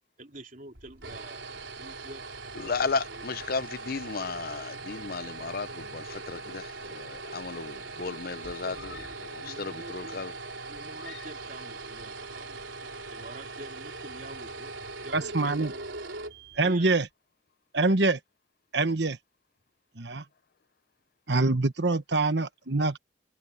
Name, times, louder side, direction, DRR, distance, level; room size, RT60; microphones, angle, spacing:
voice 1, 0.2-2.2 3.1-3.2 7.8-8.2 8.6-10.2 10.7-12.6 13.1-14.7 15.0-15.8 16.6-17.0, right 2 dB, 45° right, 3.7 m, -46 dB
sound 1, 0.7-17.0, right 3 dB, 90° right, 4.0 m, -41 dB
voice 2, 2.5-10.3, left 4 dB, 50° left, 0.7 m, -34 dB
Screaming, 8.7-9.4 9.9-11.7, left 6 dB, 80° left, 6.4 m, -51 dB
voice 3, 15.1-15.7 16.6-17.1 17.7-18.2 18.7-19.2 20.0-20.2 21.3-23.0, right 3 dB, 65° right, 1.3 m, -25 dB
head